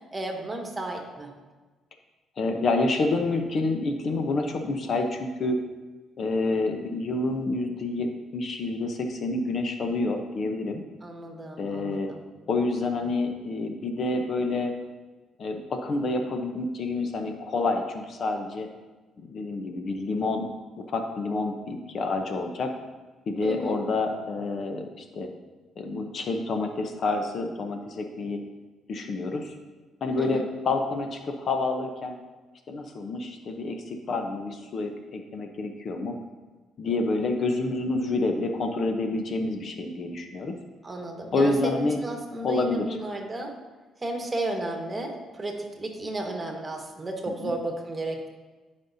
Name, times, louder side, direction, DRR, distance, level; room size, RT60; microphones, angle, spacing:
voice 1, 0.1-1.3 11.0-12.2 23.4-23.7 30.2-30.4 40.8-43.5 44.0-48.3, right 2 dB, 25° right, 2 dB, 1.5 m, -33 dB
voice 2, 2.4-5.6 6.2-8.1 8.3-10.8 11.6-12.1 12.5-14.7 15.4-18.7 19.3-20.4 20.9-22.7 23.3-25.3 25.8-28.4 28.9-29.5 30.0-32.2 32.7-36.1 36.8-40.5 41.3-42.0 42.4-43.0 47.3-47.5, left 3 dB, 55° left, 5 dB, 0.8 m, -28 dB
13.5 x 5.3 x 2.7 m, 1.3 s
cardioid pair, 90°, 0 cm